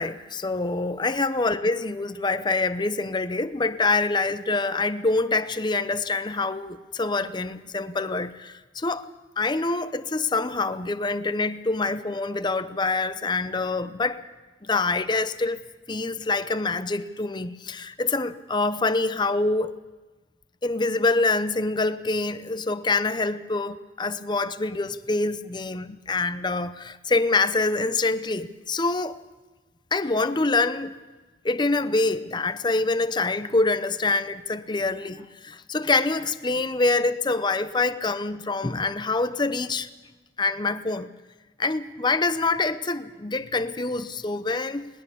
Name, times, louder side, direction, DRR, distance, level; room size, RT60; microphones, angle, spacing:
voice 1, 0.0-14.2 14.6-19.7 20.6-29.2 29.9-31.0 31.4-39.9 40.4-41.1 41.6-44.9, left 3 dB, 25° left, 0.7 m, -25 dB
20.0 x 19.5 x 7.0 m
head